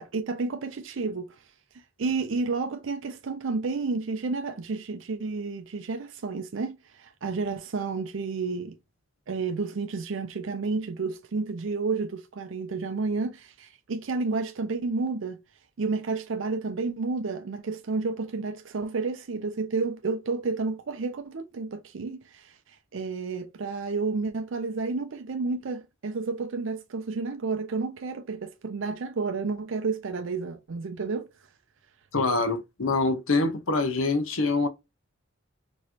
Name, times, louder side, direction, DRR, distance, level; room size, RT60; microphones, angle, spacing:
voice 1, 0.0-1.4 2.0-8.8 9.3-15.4 15.8-22.6 22.9-31.3, right 4 dB, 70° right, 0.5 m, -31 dB
voice 2, 32.1-34.7, left 3 dB, 85° left, 0.9 m, -25 dB
4.6 x 3.0 x 2.8 m
head